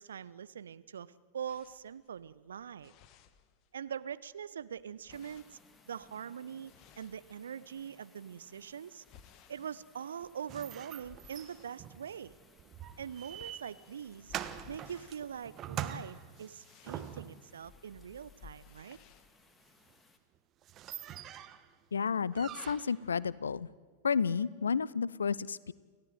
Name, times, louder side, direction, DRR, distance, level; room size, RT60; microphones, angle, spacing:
voice 1, 0.0-2.9 3.7-5.6 5.9-9.0 9.5-12.3 13.0-14.3 14.7-19.0, right 8 dB, 65° right, 16 dB, 0.8 m, -43 dB
sound 1, 1.5-4.0 4.3-7.9 8.5-11.8 12.2-12.5 12.8-19.3, left 7 dB, 40° left, 1.5 m, -60 dB
sound 2, 5.1-20.2, left 3 dB, 15° left, 2.4 m, -65 dB
sound 3, 10.5-17.5 19.9-20.0 20.3-20.4 20.6-21.7 22.3-23.1, right 10 dB, 30° right, 1.3 m, -44 dB
voice 2, 21.9-23.7 24.0-25.7, left 6 dB, 70° left, 22 dB, 0.6 m, -31 dB
28.5 x 15.5 x 9.4 m, 1.5 s
figure-of-eight pair, 90°, 0 cm